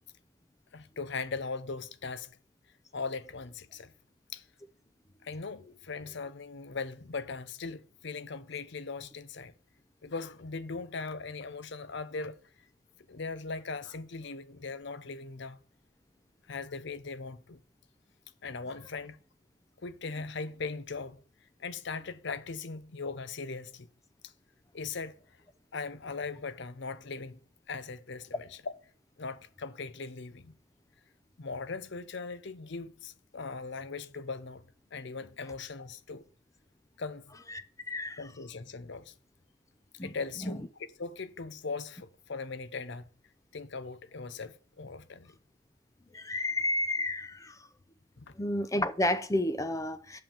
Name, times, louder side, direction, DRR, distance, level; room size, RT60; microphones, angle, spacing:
voice 1, 0.7-2.4 2.9-3.9 4.3-4.5 5.2-9.5 10.0-12.4 13.1-15.6 16.5-17.6 18.4-19.2 19.8-21.2 21.6-23.9 24.2-24.3 24.7-25.2 25.7-27.4 27.7-28.7 29.2-30.5 31.4-34.6 34.9-36.3 37.0-37.4 38.2-39.1 40.0-40.6 41.0-43.1 43.5-45.3 46.2-46.3 48.2-48.3, left 4 dB, 55° left, 0.6 m, -39 dB
voice 2, 37.9-38.2 40.0-40.1 40.5-40.6 46.1-47.5 48.4-50.2, left 1 dB, 15° left, 0.6 m, -30 dB
6.9 x 5.6 x 7.2 m
head